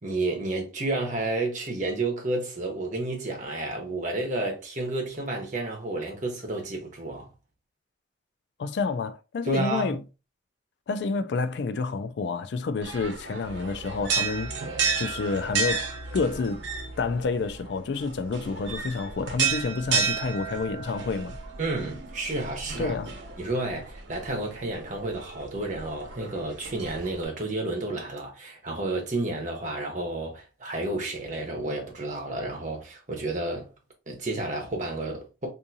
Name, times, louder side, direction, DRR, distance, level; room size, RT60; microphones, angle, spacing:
voice 1, 0.0-7.3 9.4-10.0 21.6-23.0 23.4-33.7 34.1-35.5, right 2 dB, 40° right, 1.0 m, -31 dB
voice 2, 8.6-10.0 10.9-14.6 15.0-15.9 16.1-16.6 17.0-21.4 22.8-23.1, left 4 dB, 70° left, 0.3 m, -29 dB
sound 1, 12.8-27.2, right 5 dB, 80° right, 0.8 m, -32 dB
3.6 x 2.6 x 2.7 m
head